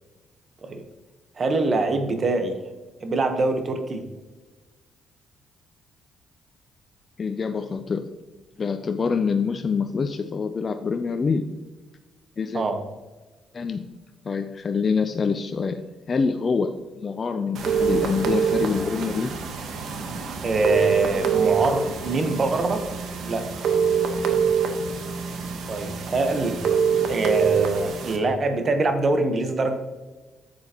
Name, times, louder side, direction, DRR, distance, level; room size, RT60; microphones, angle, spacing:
voice 1, 1.4-2.6 3.0-4.0 12.5-12.8 20.4-22.8 23.2-23.5 25.7-26.6 27.1-29.7, right 2 dB, 40° right, 7 dB, 1.1 m, -24 dB
voice 2, 7.2-8.1 8.6-11.4 12.4-12.6 13.5-13.9 14.2-15.8 16.1-19.3, left 5 dB, 40° left, 7 dB, 0.5 m, -25 dB
sound 1, 17.5-28.2, right 6 dB, 75° right, 1.1 m, -25 dB
9.6 x 7.8 x 3.0 m, 1.2 s
cardioid pair, 90°, 0 cm